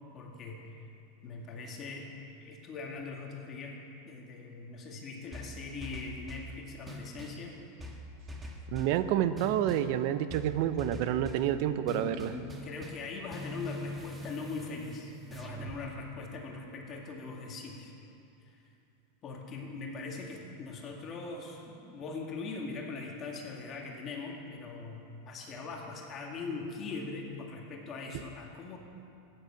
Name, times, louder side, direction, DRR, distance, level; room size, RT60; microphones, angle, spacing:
voice 1, 0.1-0.6 1.2-2.1 2.4-3.8 4.1-7.5 11.9-17.9 18.4-18.6 19.2-28.8, left 4 dB, 35° left, 0 dB, 2.1 m, -41 dB
sound 1, 5.3-6.5 6.9-7.4 7.8-9.0 9.4-9.9 10.3-11.5 11.9-15.8, left 1 dB, 15° right, 1.6 m, -43 dB
voice 2, 8.7-12.3, right 11 dB, 60° right, 12 dB, 0.7 m, -29 dB
14.5 x 9.9 x 5.9 m, 2.7 s
supercardioid pair, 125°, 0 cm